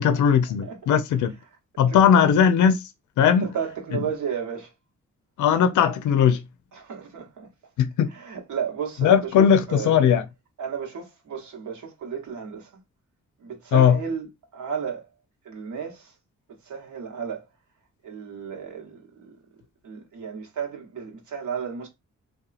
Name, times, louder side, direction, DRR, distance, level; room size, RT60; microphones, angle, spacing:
voice 1, 0.0-1.3 1.8-2.8 3.2-3.5 5.4-6.4 7.8-8.1 9.0-10.2 13.7-14.0, left 8 dB, 75° left, 0.5 m, -18 dB
voice 2, 0.6-1.0 1.9-2.3 3.2-4.7 6.7-7.5 8.1-10.1 10.6-12.8 13.4-15.1 15.4-16.1 16.6-17.4 18.0-19.3 19.8-21.9, right 7 dB, 75° right, 1.0 m, -33 dB
2.8 x 2.2 x 2.4 m
cardioid pair, 65°, 30 cm